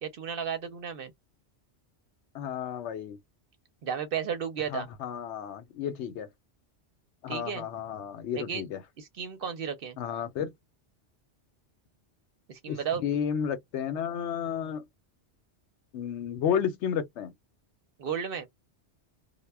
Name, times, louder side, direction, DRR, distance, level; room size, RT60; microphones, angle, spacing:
voice 1, 0.0-1.1 3.8-4.9 7.3-7.6 8.4-8.6 9.0-10.0 12.5-13.0 18.0-18.5, right 7 dB, 60° right, 0.7 m, -33 dB
voice 2, 2.3-3.2 4.7-6.3 7.2-8.8 10.0-10.5 12.7-14.9 15.9-17.3, left 8 dB, 80° left, 0.9 m, -32 dB
2.1 x 2.1 x 3.3 m
omnidirectional pair, 1.2 m